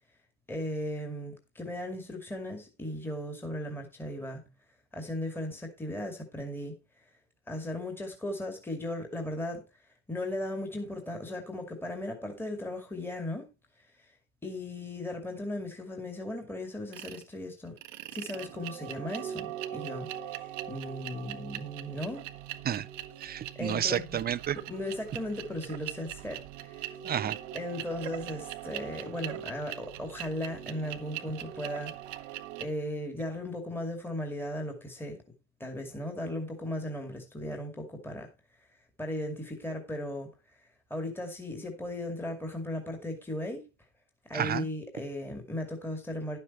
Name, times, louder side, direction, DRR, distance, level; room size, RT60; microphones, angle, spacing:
voice 1, 0.5-4.5 4.9-6.7 7.5-9.6 10.1-13.5 14.0-14.1 14.4-17.8 18.1-22.3 23.6-24.2 24.7-27.0 27.5-32.0 32.6-35.2 35.6-38.3 39.0-40.3 40.9-43.7 44.2-46.4, left 1 dB, 5° left, 2.3 m, -37 dB
sound 1, 16.9-17.2 17.8-32.7, right 12 dB, 85° right, 1.2 m, -41 dB
voice 2, 23.2-24.6 27.0-27.4 44.3-44.6, right 10 dB, 25° right, 0.6 m, -30 dB
11.5 x 7.6 x 4.3 m
supercardioid pair, 105°, 36 cm